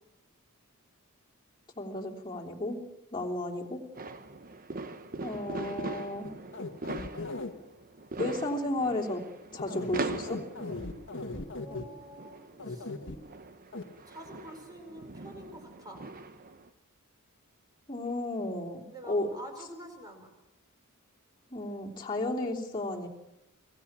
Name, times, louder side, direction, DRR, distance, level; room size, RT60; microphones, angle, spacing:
voice 1, 1.7-2.8 3.1-3.8 5.2-6.3 8.2-9.2 9.5-10.4 17.9-19.3 21.5-23.1, left 1 dB, 20° left, -4 dB, 3.3 m, -33 dB
sound 1, 3.9-16.7, right 3 dB, 40° right, 1.0 m, -41 dB
sound 2, 6.2-7.5 9.5-11.9 12.6-13.2 13.7-13.8, left 2 dB, 60° left, 1.7 m, -37 dB
voice 2, 11.5-12.9 14.0-16.0 18.9-20.3, right 1 dB, 15° right, 3 dB, 4.9 m, -47 dB
25.0 x 16.5 x 7.4 m, 0.96 s
head